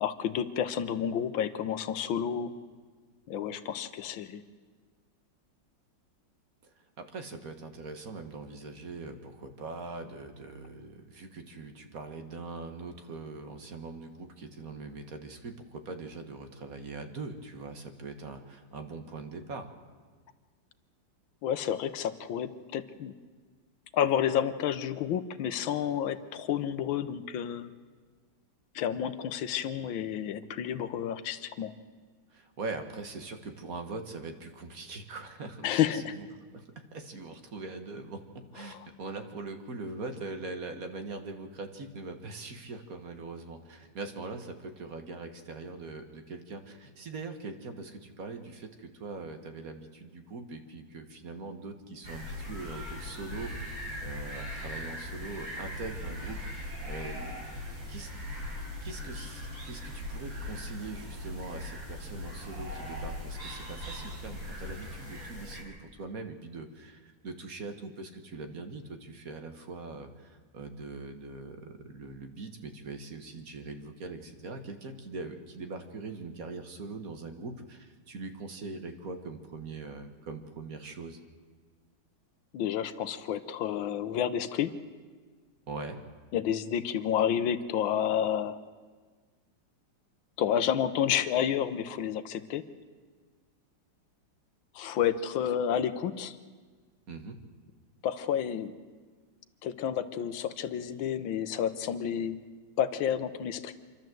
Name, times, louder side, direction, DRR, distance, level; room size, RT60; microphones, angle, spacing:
voice 1, 0.0-2.5 3.3-4.4 21.4-23.1 23.9-27.7 28.8-31.7 35.6-36.2 38.6-38.8 82.5-84.8 86.3-88.6 90.4-92.7 94.8-96.4 98.0-98.7 99.6-102.4 102.8-103.7, left 9 dB, 85° left, 10 dB, 1.6 m, -30 dB
voice 2, 6.6-19.7 32.3-36.3 36.5-57.4 57.9-58.1 58.8-81.2 85.7-86.0 97.1-97.4, right 3 dB, 50° right, 7 dB, 1.8 m, -42 dB
sound 1, 52.0-65.6, left 1 dB, 80° right, 5.4 m, -39 dB
27.5 x 12.0 x 7.7 m, 1.5 s
omnidirectional pair, 2.1 m